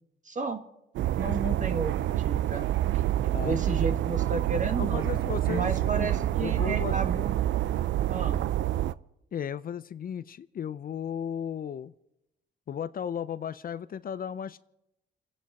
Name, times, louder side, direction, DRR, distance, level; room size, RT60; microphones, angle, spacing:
voice 1, 0.3-0.6 1.1-2.7 3.4-5.1 5.5-7.4 8.1-8.4, right 4 dB, 40° right, 7 dB, 1.8 m, -32 dB
sound 1, 0.9-8.9, right 13 dB, 70° right, 0.5 m, -27 dB
voice 2, 4.8-6.1 6.4-6.9 9.3-11.9 12.7-14.6, left 8 dB, 45° left, 14 dB, 0.5 m, -35 dB
30.0 x 10.0 x 4.2 m, 0.87 s
cardioid pair, 90°, 20 cm